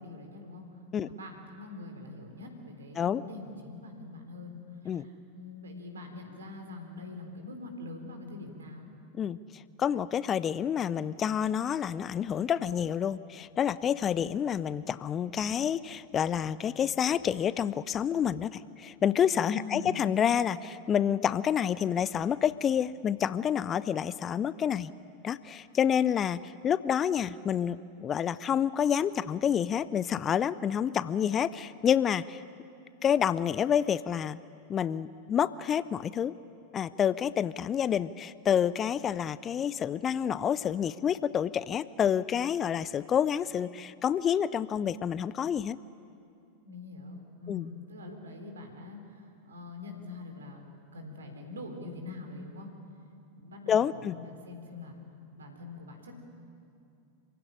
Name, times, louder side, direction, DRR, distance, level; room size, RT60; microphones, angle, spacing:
voice 1, 0.0-8.9 19.5-20.0 46.6-50.6 50.9-52.7 53.4-55.0 55.3-56.1, left 2 dB, 70° right, 4 dB, 3.8 m, -44 dB
voice 2, 9.1-24.9 25.2-32.4 33.0-34.4 34.7-36.3 36.7-45.8 47.5-47.7 53.7-54.1, left 8 dB, 25° left, 17 dB, 0.5 m, -28 dB
26.5 x 16.5 x 10.0 m, 2.6 s
figure-of-eight pair, 90°, 0 cm